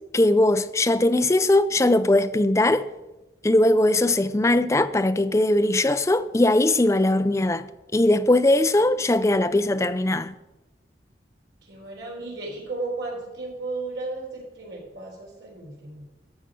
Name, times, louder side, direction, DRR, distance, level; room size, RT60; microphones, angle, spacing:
voice 1, 0.1-2.9 3.4-10.3, left 1 dB, 15° left, 0.4 m, -20 dB
voice 2, 11.6-16.0, right 2 dB, 80° right, 3.9 m, -34 dB
12.0 x 6.9 x 6.2 m
head